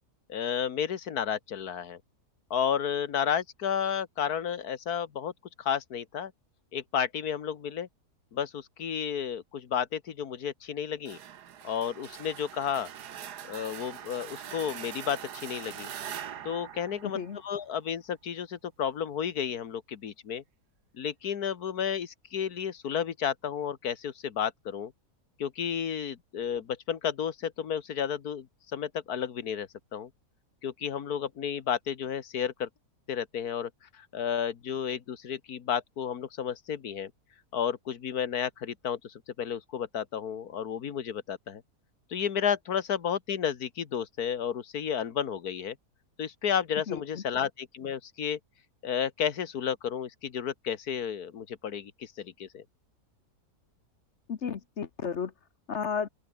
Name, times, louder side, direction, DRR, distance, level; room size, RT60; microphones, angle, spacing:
voice 1, 0.3-2.0 2.5-5.3 5.6-6.3 6.7-7.9 8.3-11.2 11.6-12.9 13.5-15.9 16.5-20.4 21.0-24.9 25.4-28.5 28.7-30.1 30.6-32.7 33.1-37.1 37.5-41.6 42.1-45.8 46.2-48.4 48.8-52.6, left 8 dB, 70° left, 1.9 m, -32 dB
sound 1, 11.0-17.8, right 9 dB, 90° right, 1.7 m, -43 dB
voice 2, 17.0-17.4 46.9-47.2 54.3-55.3 55.7-56.1, left 6 dB, 50° left, 1.3 m, -33 dB
open air
omnidirectional pair, 1.7 m